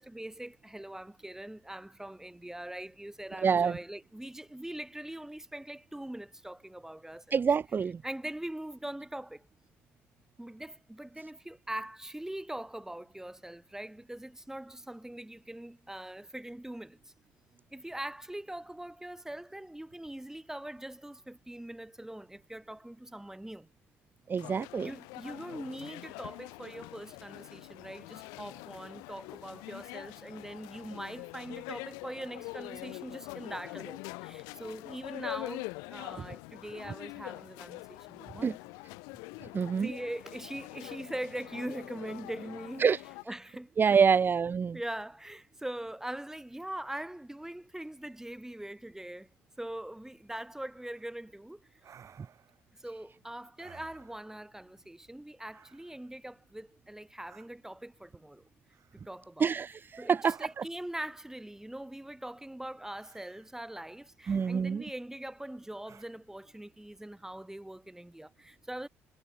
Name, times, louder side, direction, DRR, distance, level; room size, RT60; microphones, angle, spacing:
voice 1, 0.0-7.4 8.0-9.5 10.4-17.1 17.7-23.7 24.8-38.7 39.8-44.2 44.7-49.3 49.6-51.7 52.8-58.4 58.9-68.9, right 1 dB, 5° right, 2.6 m, -42 dB
voice 2, 3.4-3.8 7.3-8.0 24.3-24.9 38.4-38.5 39.5-39.9 42.8-43.0 43.8-44.8 59.4-60.4 64.3-64.8, right 6 dB, 35° right, 0.4 m, -26 dB
sound 1, 24.4-43.2, left 30 dB, 80° left, 0.6 m, -44 dB
sound 2, 50.9-51.2 51.8-52.7 53.6-54.5 55.5-56.1 57.3-57.5 58.7-59.2 60.2-60.9 62.9-63.5 64.2-64.9 65.8-66.1, right 8 dB, 50° right, 6.4 m, -58 dB
hypercardioid pair, 55°, 6 cm